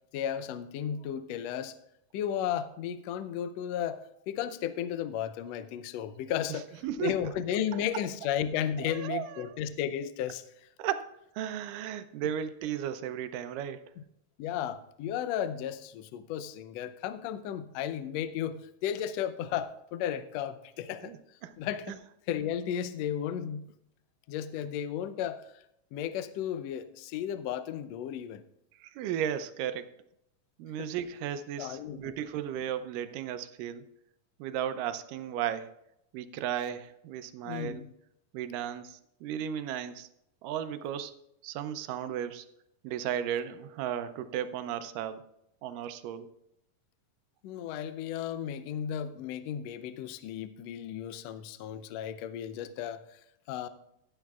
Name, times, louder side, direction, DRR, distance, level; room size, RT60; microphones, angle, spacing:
voice 1, 0.1-1.7 2.1-6.7 7.0-10.4 14.4-21.1 21.6-22.0 22.3-23.7 24.3-25.4 25.9-28.4 30.8-30.9 31.6-32.1 37.4-37.9 47.4-53.2 53.5-53.7, left 9 dB, 85° left, 12 dB, 1.5 m, -34 dB
voice 2, 6.5-7.2 8.8-9.6 10.8-13.8 21.0-21.2 21.4-21.5 21.9-22.0 28.8-29.9 30.6-33.9 34.4-35.7 36.1-37.8 38.3-40.1 40.4-41.1 41.4-42.5 42.8-45.2 45.6-46.3, right 10 dB, 85° right, 11 dB, 2.3 m, -35 dB
16.5 x 8.9 x 2.4 m, 0.79 s
omnidirectional pair, 3.7 m